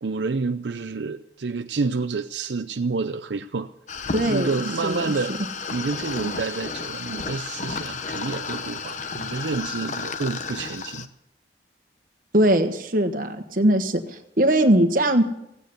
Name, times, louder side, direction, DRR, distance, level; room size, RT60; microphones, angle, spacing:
voice 1, 0.0-3.7 4.2-5.3 5.7-11.1, right 4 dB, 80° right, 8 dB, 0.6 m, -28 dB
sound 1, 3.9-11.1, left 4 dB, 45° left, 0.8 m, -32 dB
voice 2, 4.1-5.1 12.3-15.2, right 1 dB, 50° right, 6 dB, 1.3 m, -21 dB
15.5 x 9.2 x 8.1 m, 0.83 s
head